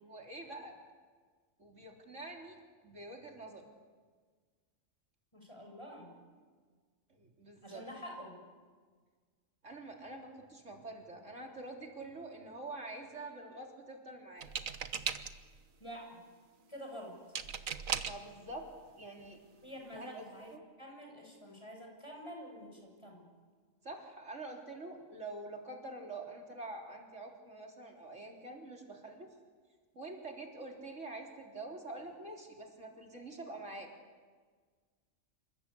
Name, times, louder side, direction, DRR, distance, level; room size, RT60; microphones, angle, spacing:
voice 1, 0.1-0.8 1.6-3.6 7.1-7.8 9.6-14.5 18.0-18.7 19.0-19.4 20.0-20.2 20.5-20.6 23.8-29.3 29.9-33.9, right 2 dB, 65° right, 0 dB, 4.0 m, -46 dB
voice 2, 5.3-6.1 7.6-8.4 15.8-16.2 16.7-17.2 19.6-20.5 20.8-23.2, equal, 20° left, 1 dB, 7.3 m, -47 dB
sound 1, 14.4-15.6 17.3-18.3 19.2-19.3 19.7-20.0, right 6 dB, 85° right, 1.6 m, -37 dB
28.0 x 25.0 x 8.5 m, 1.5 s
omnidirectional pair, 1.4 m